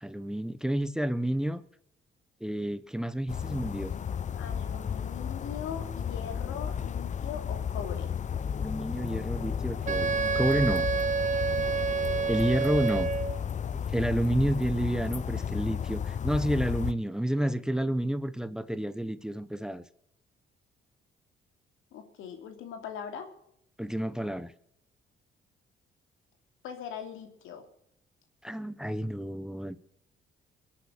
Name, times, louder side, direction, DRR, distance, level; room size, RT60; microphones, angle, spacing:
voice 1, 0.0-1.6 2.4-3.9 8.6-10.9 12.3-13.1 13.7-19.8 23.8-24.5 28.4-29.8, right 1 dB, 5° right, 0.9 m, -30 dB
sound 1, 3.3-16.9, left 7 dB, 40° left, 0.6 m, -33 dB
voice 2, 4.4-8.1 21.9-23.3 26.6-27.7, left 7 dB, 90° left, 2.9 m, -40 dB
Wind instrument woodwind instrument, 9.9-13.4, right 6 dB, 40° right, 0.6 m, -29 dB
22.5 x 8.6 x 6.4 m
cardioid pair, 90°, 20 cm